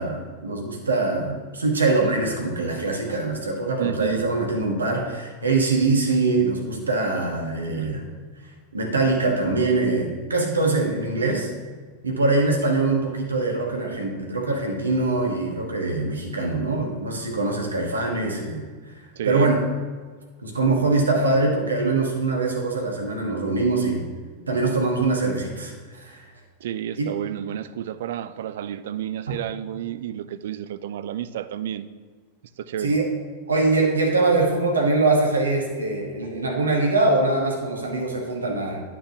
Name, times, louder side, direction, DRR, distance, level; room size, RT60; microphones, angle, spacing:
voice 1, 0.0-8.0 8.7-11.5 12.0-18.6 19.2-19.6 20.4-24.1 24.5-25.7 26.0-26.2 27.0-27.1 32.8-33.1 33.5-38.8, right 3 dB, 75° right, 1.3 m, -23 dB
voice 2, 3.8-4.3 7.7-8.0 19.2-19.5 26.6-31.9 32.6-33.0, right 10 dB, 55° right, 0.3 m, -31 dB
9.9 x 6.0 x 2.9 m
figure-of-eight pair, 90°, 0 cm